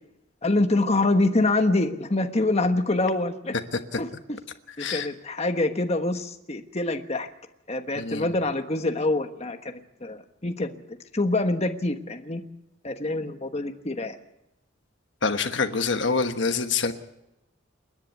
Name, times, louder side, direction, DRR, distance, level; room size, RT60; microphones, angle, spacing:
voice 1, 0.4-3.5 4.0-4.1 4.8-7.3 7.7-10.7 11.1-12.4 12.8-14.2, left 2 dB, 30° left, 6 dB, 1.3 m, -25 dB
voice 2, 4.7-5.1 7.9-8.3 15.2-16.9, left 4 dB, 60° left, 8 dB, 1.3 m, -26 dB
28.5 x 10.5 x 9.4 m, 0.88 s
head